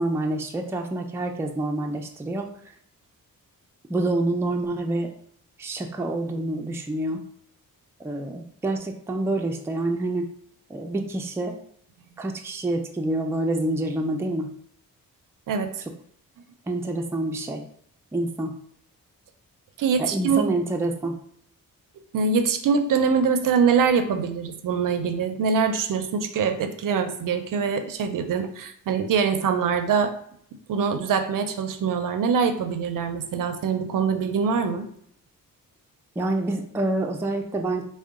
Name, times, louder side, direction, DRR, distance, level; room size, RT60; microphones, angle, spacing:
voice 1, 0.0-2.5 3.9-5.1 5.6-7.2 8.0-10.3 10.7-11.6 12.2-14.5 16.7-17.6 18.1-18.5 20.0-21.1 36.2-37.8, right 2 dB, 10° right, 3 dB, 0.3 m, -27 dB
voice 2, 19.8-20.4 22.1-30.1 30.7-34.9, right 6 dB, 70° right, 9 dB, 0.5 m, -23 dB
3.8 x 2.1 x 3.6 m, 0.65 s
wide cardioid pair, 110°, 34 cm